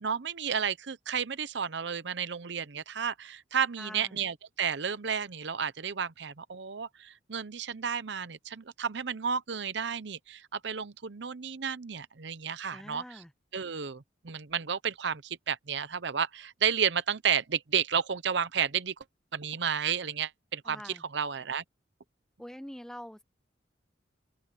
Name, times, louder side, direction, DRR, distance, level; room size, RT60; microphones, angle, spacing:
voice 1, 0.0-13.2 13.5-18.9 19.3-21.6, right 7 dB, 65° right, 0.7 m, -32 dB
voice 2, 3.8-4.2 12.7-13.3 20.7-21.0 22.4-23.2, equal, 5° left, 0.4 m, -44 dB
open air
head